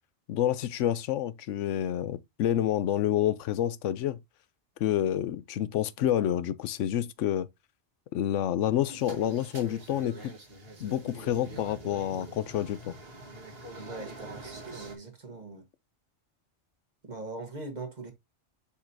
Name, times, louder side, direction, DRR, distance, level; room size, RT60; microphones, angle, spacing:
voice 1, 0.3-4.2 4.8-7.5 8.1-10.3 10.8-12.9, left 11 dB, 90° left, 0.9 m, -28 dB
sound 1, 8.8-15.0, right 2 dB, 55° right, 1.7 m, -44 dB
voice 2, 13.9-15.6 17.0-18.1, right 3 dB, 40° right, 1.4 m, -41 dB
6.9 x 5.1 x 2.6 m
omnidirectional pair, 1.2 m